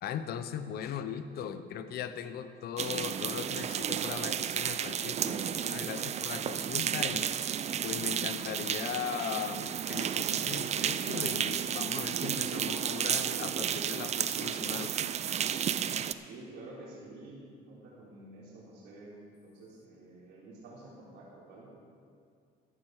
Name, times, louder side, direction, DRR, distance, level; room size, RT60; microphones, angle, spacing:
voice 1, 0.0-7.3 7.8-14.9, left 8 dB, 65° left, 11 dB, 0.8 m, -39 dB
sound 1, 2.8-16.1, right 9 dB, 40° right, 0.5 m, -32 dB
voice 2, 16.2-21.7, right 2 dB, 80° right, -6 dB, 3.7 m, -49 dB
13.5 x 11.0 x 4.8 m, 2.3 s
cardioid pair, 110°, 17 cm